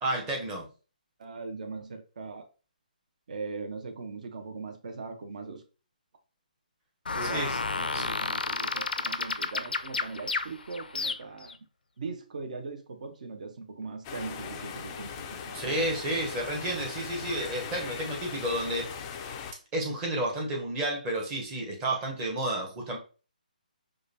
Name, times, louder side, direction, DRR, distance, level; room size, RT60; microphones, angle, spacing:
voice 1, 0.0-0.7 7.2-7.6 7.9-8.1 15.5-18.9 19.7-23.0, right 1 dB, 15° right, 0.8 m, -31 dB
voice 2, 1.2-2.5 3.3-5.6 7.1-7.5 7.8-11.6 12.0-15.9, right 4 dB, 55° right, 0.7 m, -40 dB
sound 1, 7.1-11.5, left 4 dB, 90° left, 0.4 m, -31 dB
sound 2, 14.0-19.5, left 7 dB, 20° left, 0.3 m, -39 dB
4.9 x 2.3 x 2.6 m
hypercardioid pair, 160°, 5 cm